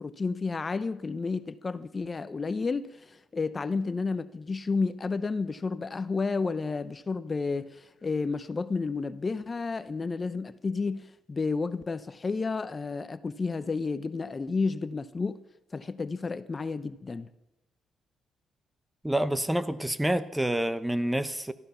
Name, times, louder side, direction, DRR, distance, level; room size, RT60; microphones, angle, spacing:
voice 1, 0.0-15.4 15.7-17.3, left 4 dB, 30° left, 0.8 m, -31 dB
voice 2, 19.0-21.5, right 1 dB, 5° right, 0.9 m, -28 dB
17.5 x 14.0 x 5.6 m
cardioid pair, 90°, 0 cm